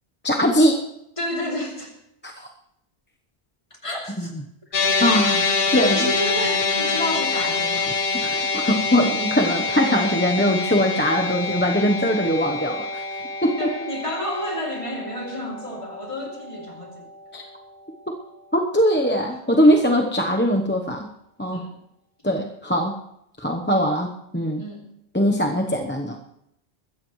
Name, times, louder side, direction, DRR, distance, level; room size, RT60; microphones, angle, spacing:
voice 1, 0.2-0.8 2.2-2.5 5.0-5.4 5.7-6.1 8.1-13.0 13.4-13.7 17.3-17.4 18.1-18.2 18.5-21.1 21.4-21.6 22.2-22.9 23.4-24.6 25.1-26.2, equal, 10° left, 1 dB, 0.8 m, -21 dB
voice 2, 1.2-1.9 3.7-4.3 5.2-5.4 5.7-7.9 13.5-17.1 18.9-19.2 21.5-21.8 24.6-24.9, left 1 dB, 25° left, -1 dB, 3.1 m, -31 dB
sound 1, 4.7-17.2, left 4 dB, 55° left, 1.4 m, -26 dB
21.0 x 14.5 x 3.2 m, 0.79 s
omnidirectional pair, 1.2 m